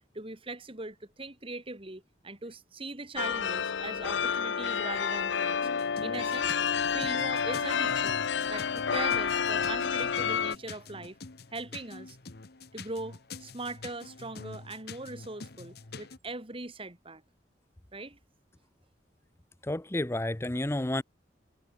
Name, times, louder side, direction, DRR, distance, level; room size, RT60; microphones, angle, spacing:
voice 1, 0.1-6.5 6.9-8.2 8.5-11.2 11.5-12.2 12.7-17.2 17.9-18.2, right 2 dB, 30° right, 2.6 m, -40 dB
sound 1, 3.2-10.6, left 7 dB, 85° left, 0.7 m, -29 dB
sound 2, 5.6-16.2, left 4 dB, 60° left, 1.2 m, -46 dB
voice 2, 19.6-21.0, left 1 dB, 15° left, 0.7 m, -30 dB
head